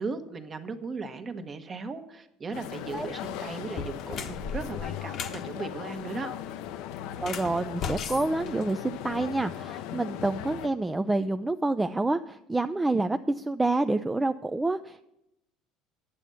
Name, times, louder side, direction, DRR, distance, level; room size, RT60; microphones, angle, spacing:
voice 1, 0.0-6.3, right 4 dB, 30° right, 8 dB, 1.1 m, -37 dB
sound 1, 2.5-10.7, left 10 dB, 75° left, 0.6 m, -38 dB
sound 2, 2.9-3.1 3.6-5.4 7.1-9.2, left 5 dB, 50° left, 1.0 m, -37 dB
voice 2, 7.2-15.0, right 2 dB, 15° right, 7 dB, 0.4 m, -28 dB
9.9 x 7.3 x 6.9 m, 0.85 s
supercardioid pair, 90°, 0 cm